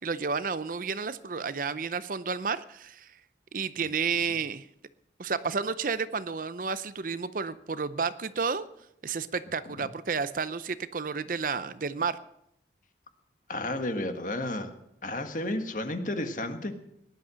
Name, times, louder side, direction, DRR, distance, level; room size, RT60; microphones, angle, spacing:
voice 1, 0.0-3.1 3.5-4.7 5.2-8.6 9.0-12.2, right 5 dB, 45° right, 14 dB, 0.6 m, -31 dB
voice 2, 13.5-14.7 15.0-16.8, left 1 dB, 45° left, 7 dB, 1.6 m, -32 dB
18.0 x 11.5 x 6.3 m, 0.78 s
head